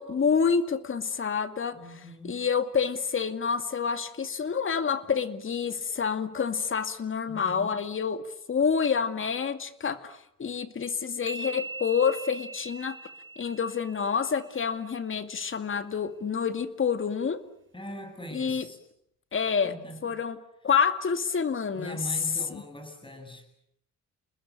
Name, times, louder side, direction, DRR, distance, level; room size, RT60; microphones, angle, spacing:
voice 1, 0.0-1.8 2.2-8.2 8.5-13.0 13.4-17.4 18.3-18.7 19.3-19.7 20.0-20.4 20.6-22.0 22.5-22.6, left 6 dB, 40° left, 10 dB, 2.3 m, -28 dB
voice 2, 1.7-2.5 7.3-7.8 17.7-18.8 19.6-20.1 21.7-23.4, equal, 15° left, 6 dB, 7.9 m, -41 dB
sound 1, 11.3-14.8, right 2 dB, 40° right, 3.1 m, -41 dB
29.5 x 20.5 x 8.8 m, 0.74 s
cardioid pair, 90°, 30 cm